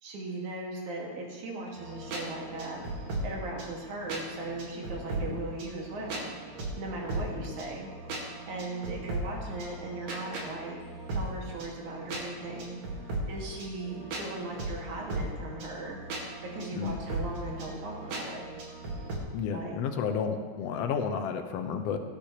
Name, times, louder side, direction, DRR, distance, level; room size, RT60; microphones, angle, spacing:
voice 1, 0.0-2.8 3.2-6.3 6.8-7.9 8.5-10.8 11.1-12.8 13.3-16.0 16.5-18.4 19.5-19.8, right 2 dB, 85° right, -2 dB, 3.4 m, -38 dB
sound 1, 1.8-19.2, right 1 dB, 65° right, 3.0 m, -38 dB
voice 2, 19.3-22.0, left 6 dB, 70° left, 6 dB, 1.8 m, -31 dB
18.0 x 10.0 x 3.1 m, 1.4 s
omnidirectional pair, 3.3 m